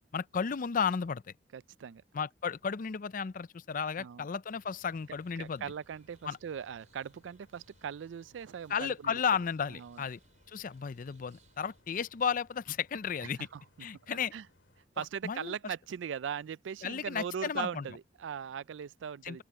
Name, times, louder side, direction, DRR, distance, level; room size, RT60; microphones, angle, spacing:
voice 1, 0.1-1.3 2.1-5.6 6.2-6.4 8.7-10.2 10.5-13.4 13.8-14.3 15.0-15.5 16.8-17.9 19.2-19.4, left 6 dB, 45° left, 0.4 m, -34 dB
voice 2, 1.5-2.0 4.0-4.3 5.4-9.2 9.7-10.0 13.5-13.6 14.1-14.4 15.0-19.4, right 8 dB, 85° right, 0.4 m, -40 dB
sound 1, 4.5-14.8, left 2 dB, 90° left, 2.5 m, -67 dB
sound 2, 5.0-11.8, right 3 dB, 40° right, 5.1 m, -68 dB
sound 3, 7.9-9.5 9.8-9.9 10.4-14.7 15.3-15.4 16.2-16.3 16.5-16.6, left 4 dB, 20° left, 7.0 m, -85 dB
open air
head